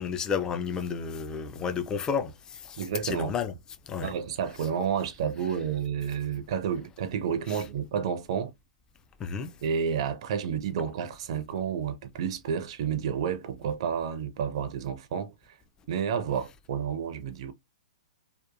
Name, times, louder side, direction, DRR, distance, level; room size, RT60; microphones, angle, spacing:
voice 1, 0.0-2.3 2.6-2.8 3.0-3.5 3.9-4.1 7.5-7.6 9.2-9.5, left 6 dB, 20° left, 0.3 m, -31 dB
voice 2, 2.8-3.3 4.0-8.5 9.6-15.3 15.9-17.5, right 7 dB, 50° right, 0.4 m, -30 dB
2.8 x 2.2 x 2.4 m
figure-of-eight pair, 115°, 4 cm